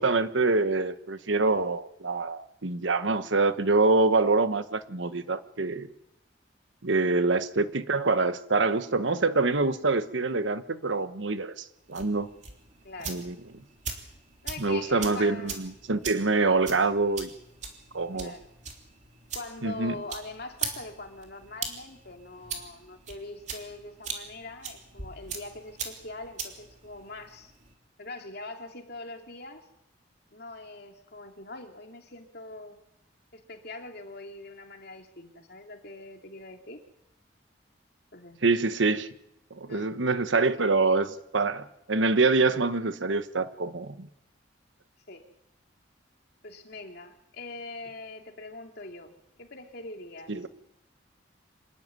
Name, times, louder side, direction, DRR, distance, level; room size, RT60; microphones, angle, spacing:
voice 1, 0.0-5.9 6.8-12.3 13.1-13.3 14.6-17.3 17.9-18.3 19.6-20.0 38.4-39.1 39.5-44.1 50.3-50.5, right 3 dB, 80° right, 11 dB, 1.2 m, -25 dB
sound 1, 11.8-27.7, right 5 dB, 40° right, 3.3 m, -41 dB
voice 2, 12.8-13.2 14.4-15.7 18.1-18.5 19.3-27.5 28.0-29.7 30.3-32.8 33.3-36.8 38.1-38.5 39.7-39.9 45.1-45.2 46.4-50.4, left 2 dB, 55° left, 3 dB, 2.9 m, -43 dB
26.0 x 13.0 x 9.6 m, 0.82 s
head